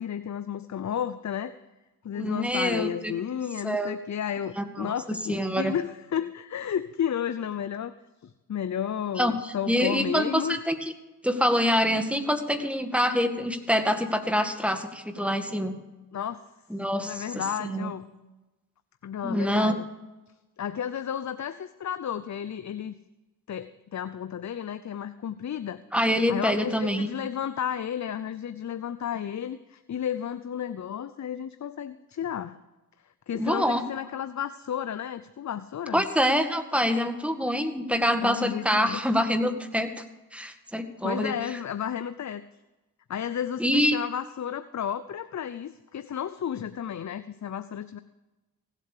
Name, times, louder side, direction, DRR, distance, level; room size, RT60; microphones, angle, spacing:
voice 1, 0.0-1.5 2.0-7.9 8.2-10.6 16.1-16.4 17.0-18.0 19.0-19.9 20.6-22.9 23.5-25.8 26.3-32.6 33.3-36.0 38.2-39.0 41.0-42.4 43.1-48.0, left 9 dB, 50° left, 13 dB, 0.7 m, -32 dB
voice 2, 2.2-3.1 3.6-4.0 4.6-5.8 9.2-10.8 11.2-15.8 16.7-17.9 19.2-19.8 25.9-27.1 33.3-33.8 35.9-40.0 40.3-41.3 43.6-44.0, equal, 5° right, 7 dB, 2.0 m, -26 dB
16.5 x 8.3 x 6.7 m, 1.1 s
cardioid pair, 50°, 37 cm